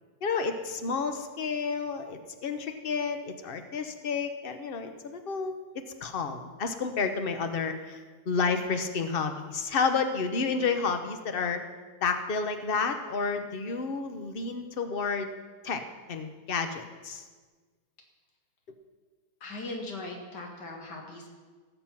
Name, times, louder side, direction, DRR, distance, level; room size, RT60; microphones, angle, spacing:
voice 1, 0.2-5.6 6.0-11.6 12.0-15.3 15.6-15.8 16.1-17.2, left 5 dB, 40° left, 7 dB, 0.9 m, -30 dB
voice 2, 19.4-21.3, left 2 dB, 75° left, 1 dB, 2.6 m, -39 dB
17.5 x 6.9 x 5.9 m, 1.4 s
omnidirectional pair, 1.9 m